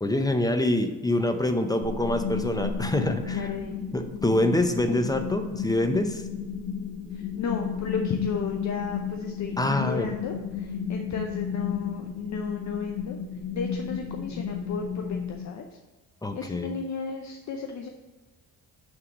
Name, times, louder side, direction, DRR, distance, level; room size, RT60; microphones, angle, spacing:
voice 1, 0.0-3.5 3.9-6.2 9.6-10.1 16.2-16.7, left 1 dB, 10° left, 7 dB, 0.6 m, -25 dB
sound 1, 1.8-15.4, left 6 dB, 70° left, 1.4 m, -33 dB
voice 2, 3.3-3.8 7.1-13.2 13.5-15.8 16.3-17.9, left 5 dB, 50° left, 4 dB, 0.6 m, -34 dB
5.9 x 3.8 x 6.1 m, 1.2 s
cardioid pair, 95°, 36 cm